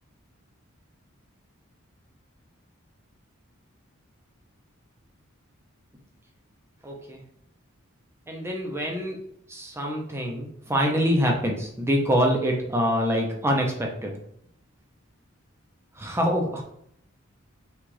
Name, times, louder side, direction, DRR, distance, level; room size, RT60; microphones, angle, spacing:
voice 1, 6.8-7.2 8.3-9.2 9.5-14.2 16.0-16.6, equal, 10° right, 0 dB, 0.6 m, -25 dB
6.0 x 2.4 x 3.3 m, 0.71 s
head